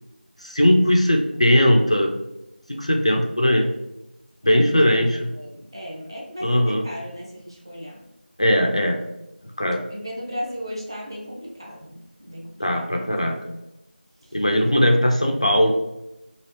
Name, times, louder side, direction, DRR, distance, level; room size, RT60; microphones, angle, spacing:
voice 1, 0.4-2.1 2.7-3.7 4.4-5.3 6.4-6.9 8.4-9.0 9.6-9.8 12.6-13.5 14.3-15.7, equal, 35° left, 2 dB, 0.3 m, -19 dB
voice 2, 5.3-8.0 9.9-12.6, equal, 25° right, -3 dB, 0.6 m, -35 dB
3.2 x 2.3 x 2.9 m, 0.90 s
figure-of-eight pair, 175°, 6 cm